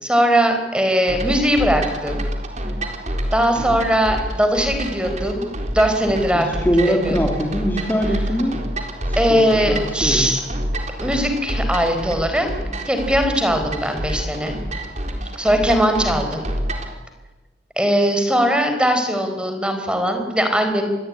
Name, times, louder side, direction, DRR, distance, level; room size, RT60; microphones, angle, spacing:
voice 1, 0.0-2.2 3.3-5.5 5.7-6.6 6.9-7.2 9.2-10.4 11.0-12.5 12.9-14.5 15.4-16.5 17.8-20.9, equal, 5° right, 6 dB, 4.6 m, -20 dB
sound 1, 1.1-16.9, equal, 40° right, 4.1 m, -28 dB
voice 2, 6.3-8.6 9.0-10.3, equal, 10° left, 1 dB, 3.3 m, -22 dB
27.0 x 21.0 x 9.9 m, 1.1 s
head